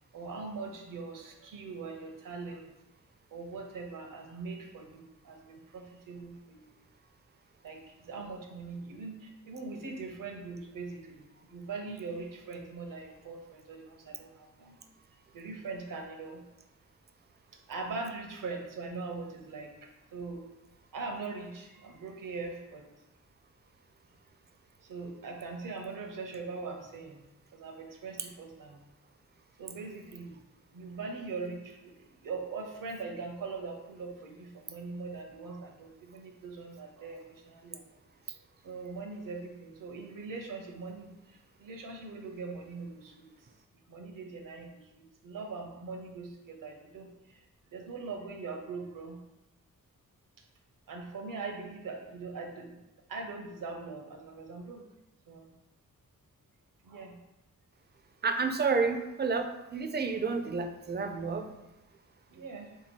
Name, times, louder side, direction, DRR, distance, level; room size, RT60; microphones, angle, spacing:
voice 1, 0.1-2.7 3.3-6.6 7.6-14.8 15.3-16.4 17.7-20.4 20.9-22.9 24.8-27.3 27.5-28.8 29.6-30.4 30.7-37.8 38.6-43.3 43.9-47.4 47.7-49.2 50.9-52.8 53.1-54.9 55.3-55.5 56.8-57.2 62.3-62.7, right 4 dB, 75° right, 3 dB, 0.8 m, -41 dB
voice 2, 58.2-61.5, right 4 dB, 30° right, 7 dB, 0.4 m, -30 dB
3.4 x 2.9 x 4.4 m, 0.99 s
cardioid pair, 80°, 32 cm